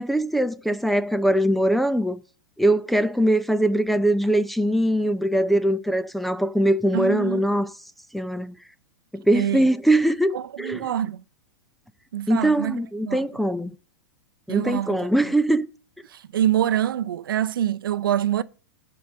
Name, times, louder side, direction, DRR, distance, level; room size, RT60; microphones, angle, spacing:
voice 1, 0.0-2.2 2.6-7.7 8.1-8.5 9.1-10.9 12.3-13.7 14.5-15.7, right 1 dB, ahead, 0.6 m, -22 dB
voice 2, 6.9-7.4 9.3-9.6 10.3-11.2 12.1-12.7 13.0-13.3 14.5-15.0 16.1-18.4, right 11 dB, 85° right, 0.6 m, -25 dB
11.0 x 4.9 x 7.6 m
hypercardioid pair, 130°, 11 cm